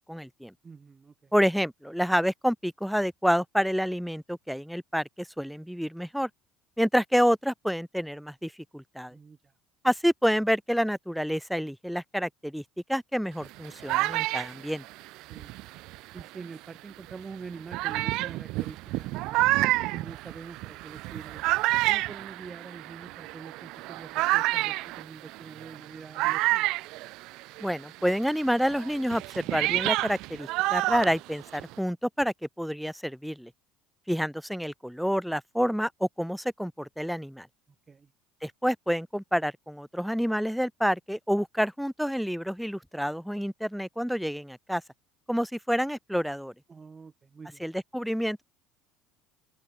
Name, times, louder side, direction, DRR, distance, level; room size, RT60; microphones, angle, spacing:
voice 1, 0.1-0.5 1.3-6.3 6.8-9.2 9.8-12.6 12.9-14.8 27.6-33.5 34.1-37.5 38.4-44.8 45.3-46.5 47.6-48.4, equal, ahead, 2.4 m, -28 dB
voice 2, 0.6-1.3 9.1-9.5 15.2-15.5 16.1-19.6 19.9-21.5 21.9-26.7 37.9-38.1 46.7-47.6, right 5 dB, 25° right, 3.6 m, -45 dB
sound 1, 13.4-16.4 17.1-17.2 17.7-27.7 28.0-31.8, right 20 dB, 70° right, 0.9 m, -29 dB
open air
supercardioid pair, 95°, 0 cm